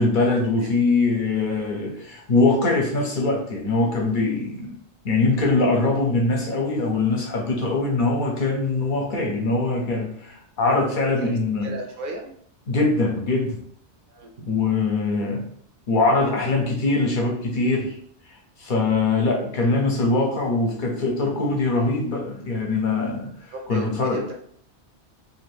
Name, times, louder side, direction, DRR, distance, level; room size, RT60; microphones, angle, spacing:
voice 1, 0.0-4.7 5.0-11.7 12.7-13.6 14.5-15.5 15.9-18.0 18.6-24.2, left 3 dB, 50° left, 1 dB, 0.7 m, -22 dB
voice 2, 11.1-12.3 14.1-14.5 23.5-24.3, right 2 dB, 60° right, 2 dB, 0.6 m, -36 dB
2.6 x 2.6 x 3.3 m, 0.62 s
omnidirectional pair, 1.2 m